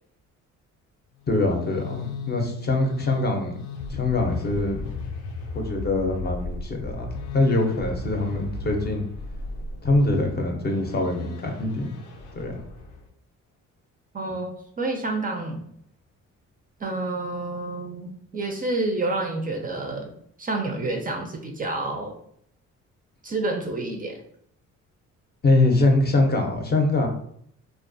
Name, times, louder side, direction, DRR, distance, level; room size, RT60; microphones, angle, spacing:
sound 1, 1.2-13.1, left 3 dB, 80° left, 0.6 m, -36 dB
voice 1, 1.3-3.6 3.9-4.8 5.5-9.0 9.8-11.9 12.3-12.6 14.3-14.4 25.4-27.1, left 2 dB, 35° left, 2 dB, 0.5 m, -23 dB
voice 2, 14.1-14.5 14.8-15.6 16.8-20.1 20.4-22.1 23.2-24.2, right 2 dB, 30° right, 2 dB, 0.4 m, -29 dB
2.3 x 2.2 x 2.5 m, 0.67 s
cardioid pair, 90°, 30 cm